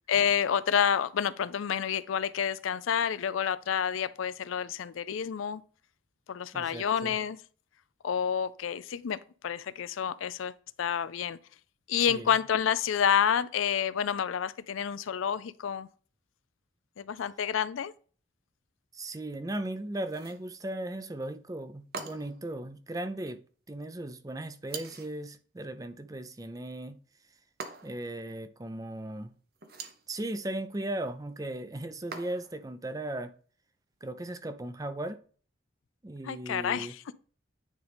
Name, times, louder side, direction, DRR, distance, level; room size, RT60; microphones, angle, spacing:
voice 1, 0.1-5.6 6.3-7.4 8.0-10.5 10.8-11.4 11.9-15.9 17.0-17.9 36.2-37.0, left 8 dB, 80° left, 0.4 m, -29 dB
voice 2, 6.5-7.2 12.1-12.3 18.9-23.4 23.7-27.0 27.8-29.3 30.1-33.3 34.0-35.2 36.0-36.9, right 1 dB, 20° right, 0.5 m, -37 dB
sound 1, 20.0-20.5 21.9-22.5 24.7-25.2 27.6-28.1 29.6-30.1 32.1-32.6, right 4 dB, 50° right, 0.8 m, -42 dB
9.5 x 3.9 x 3.5 m
head